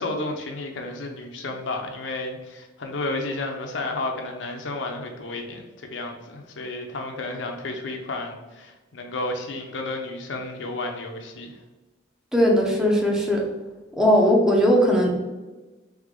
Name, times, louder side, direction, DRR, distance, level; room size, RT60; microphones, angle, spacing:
voice 1, 0.0-11.6, left 2 dB, 75° left, 3 dB, 0.7 m, -32 dB
voice 2, 12.3-13.4 14.0-15.2, equal, 5° right, -1 dB, 0.6 m, -19 dB
3.5 x 3.5 x 3.7 m, 1.2 s
head